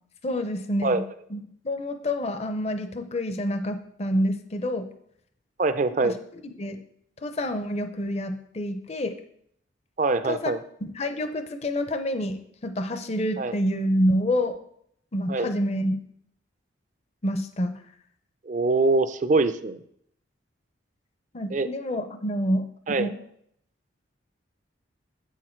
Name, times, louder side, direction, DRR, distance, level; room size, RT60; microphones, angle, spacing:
voice 1, 0.2-1.0 1.3-1.4 1.6-4.9 6.0-6.1 6.6-6.8 7.2-9.2 10.2-10.5 10.9-14.5 15.1-16.0 17.2-17.8 21.3-23.2, equal, 35° left, 8 dB, 0.5 m, -27 dB
voice 2, 5.6-6.2 10.0-10.6 13.4-13.5 15.3-15.5 18.5-19.8 21.5-21.7 22.9-23.1, right 3 dB, 40° right, 12 dB, 0.4 m, -23 dB
8.0 x 6.4 x 4.4 m, 0.70 s
head